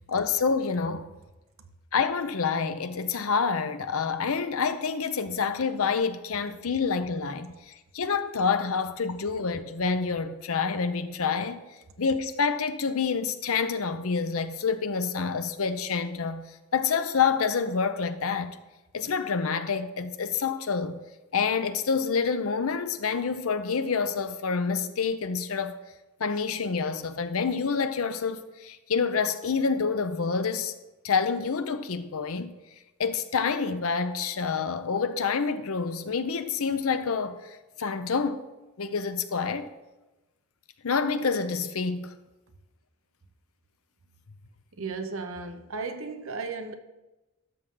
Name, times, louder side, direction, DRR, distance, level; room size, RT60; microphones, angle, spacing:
voice 1, 0.1-1.1 1.9-11.6 12.0-16.4 16.7-18.6 18.9-21.0 21.3-25.8 26.2-30.7 31.0-32.5 33.0-38.4 38.8-39.7 40.8-42.2, left 5 dB, 75° left, 0.6 m, -27 dB
voice 2, 44.7-46.7, right 4 dB, 65° right, 0.8 m, -35 dB
12.5 x 6.5 x 3.8 m
head